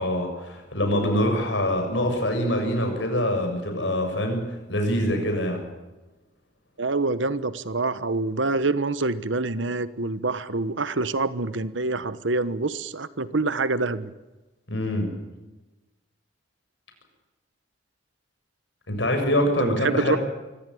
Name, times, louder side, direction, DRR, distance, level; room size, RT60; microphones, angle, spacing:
voice 1, 0.0-4.4 4.7-5.6 14.7-15.1 18.9-20.2, left 1 dB, 70° left, 4 dB, 7.2 m, -24 dB
voice 2, 6.8-14.1 19.6-20.2, right 3 dB, 75° right, 15 dB, 1.2 m, -26 dB
25.0 x 15.5 x 10.0 m, 1.1 s
head